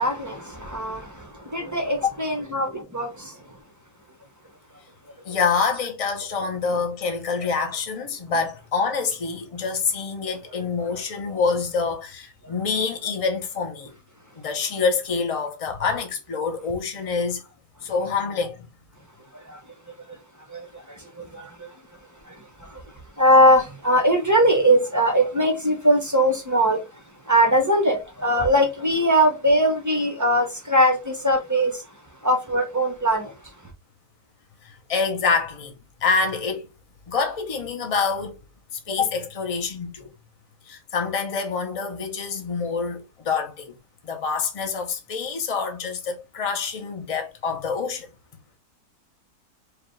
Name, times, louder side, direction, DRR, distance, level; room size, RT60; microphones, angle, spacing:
voice 1, 0.0-3.4 10.9-11.0 19.3-19.6 20.5-21.7 22.3-22.8 23.2-26.8 27.3-31.8 32.2-33.3, equal, 15° right, 0.6 m, -21 dB
voice 2, 5.2-13.9 14.4-17.4 17.8-18.6 34.9-35.7 36.0-36.7 37.1-38.4 38.9-40.1 40.7-43.7 44.0-48.1, left 5 dB, 35° left, 0.5 m, -26 dB
4.9 x 2.4 x 3.2 m
omnidirectional pair, 1.8 m